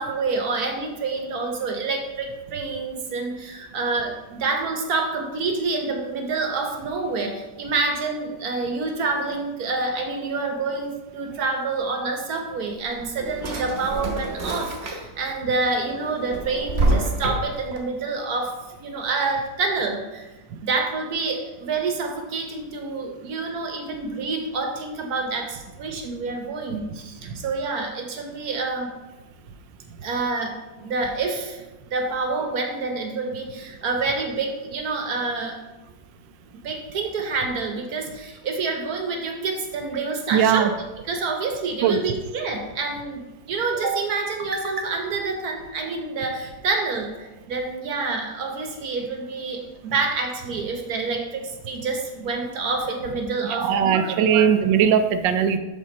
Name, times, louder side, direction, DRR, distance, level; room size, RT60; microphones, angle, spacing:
voice 1, 0.0-20.3 20.6-28.9 30.0-31.6 31.9-35.6 36.6-40.7 41.1-54.5, right 3 dB, 60° right, 3 dB, 1.3 m, -27 dB
Drawer open or close, 12.7-15.3 15.7-17.8, right 2 dB, 40° right, 1.1 m, -27 dB
voice 2, 40.3-40.7 41.8-42.0 53.5-55.6, right 8 dB, 85° right, 9 dB, 1.3 m, -19 dB
6.5 x 5.1 x 4.2 m, 1.1 s
omnidirectional pair, 2.0 m